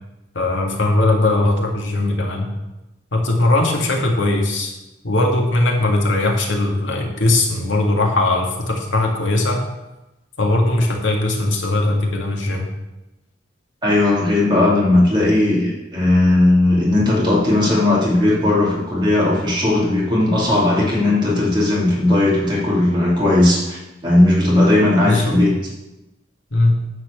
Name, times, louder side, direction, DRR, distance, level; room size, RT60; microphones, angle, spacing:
voice 1, 0.3-2.5 3.1-4.7 5.0-9.6 10.4-12.7 25.0-25.4 26.5-26.8, left 2 dB, 90° left, 1 dB, 1.8 m, -19 dB
voice 2, 13.8-25.5, left 1 dB, 25° right, -5 dB, 2.7 m, -16 dB
9.7 x 4.4 x 7.1 m, 0.99 s
head